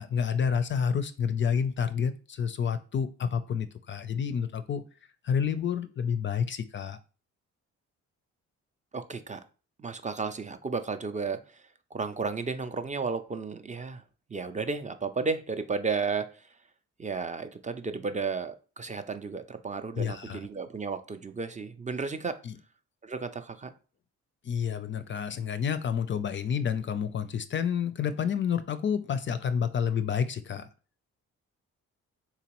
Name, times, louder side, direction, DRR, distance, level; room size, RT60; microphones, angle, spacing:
voice 1, 0.0-4.8 5.2-7.0 20.0-20.4 22.4-22.6 24.4-30.7, left 7 dB, 40° left, 11 dB, 0.4 m, -29 dB
voice 2, 8.9-9.4 9.8-11.6 11.9-14.0 14.3-16.5 17.0-22.4 23.0-23.7, right 4 dB, 25° right, 9 dB, 0.4 m, -33 dB
3.8 x 2.9 x 2.9 m, 0.36 s
cardioid pair, 70°, 31 cm